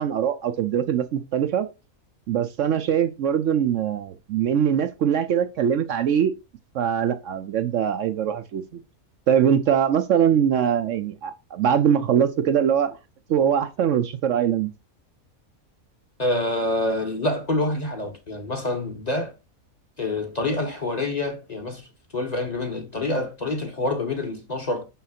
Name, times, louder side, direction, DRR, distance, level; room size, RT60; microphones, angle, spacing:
voice 1, 0.0-1.7 2.3-6.3 6.7-8.8 9.3-13.0 13.3-14.7, right 8 dB, 65° right, 0.9 m, -22 dB
voice 2, 16.2-19.3 20.0-21.9 22.1-24.9, left 2 dB, 30° left, 1.2 m, -26 dB
6.6 x 5.7 x 2.8 m
omnidirectional pair, 1.5 m